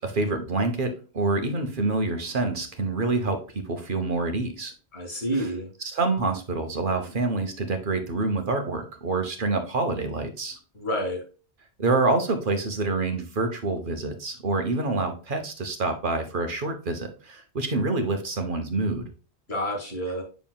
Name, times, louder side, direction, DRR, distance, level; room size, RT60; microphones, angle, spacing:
voice 1, 0.0-4.7 5.3-5.5 5.8-10.6 11.8-19.0, right 3 dB, 55° right, 6 dB, 1.1 m, -27 dB
voice 2, 4.9-5.7 10.7-11.2 19.5-20.2, equal, 75° left, 1 dB, 2.5 m, -29 dB
7.4 x 6.0 x 2.3 m, 0.36 s
omnidirectional pair, 1.1 m